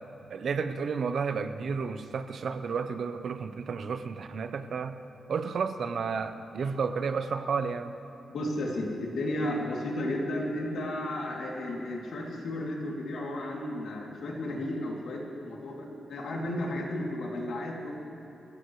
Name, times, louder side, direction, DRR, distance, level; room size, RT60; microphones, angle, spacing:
voice 1, 0.3-4.9 5.3-7.9, right 5 dB, 55° right, 9 dB, 0.7 m, -31 dB
voice 2, 8.3-17.9, left 1 dB, 80° left, -2 dB, 2.8 m, -33 dB
27.0 x 15.0 x 3.2 m, 2.9 s
wide cardioid pair, 165°, 0 cm